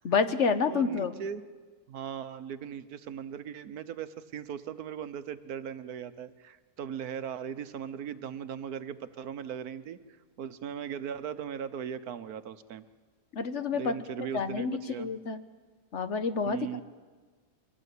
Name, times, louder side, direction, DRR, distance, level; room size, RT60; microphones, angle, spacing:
voice 1, 0.0-1.1 13.3-15.4 15.9-16.8, left 5 dB, 55° left, 10 dB, 1.2 m, -29 dB
voice 2, 0.7-1.4 1.9-10.0 10.4-12.8 13.7-15.1 16.4-16.8, right 8 dB, 85° right, 12 dB, 1.4 m, -38 dB
23.0 x 17.0 x 8.4 m, 1.4 s
omnidirectional pair, 1.6 m